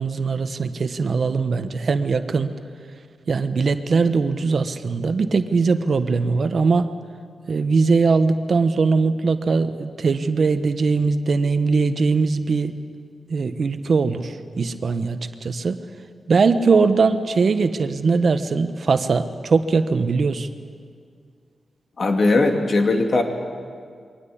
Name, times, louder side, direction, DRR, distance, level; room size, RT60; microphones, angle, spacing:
voice 1, 0.0-2.5 3.3-6.9 7.5-12.7 13.3-15.8 16.3-20.5, right 4 dB, 65° right, 10 dB, 1.1 m, -20 dB
voice 2, 22.0-23.2, left 2 dB, 60° left, 4 dB, 2.5 m, -19 dB
22.5 x 18.0 x 8.6 m, 2.1 s
cardioid pair, 75°, 0 cm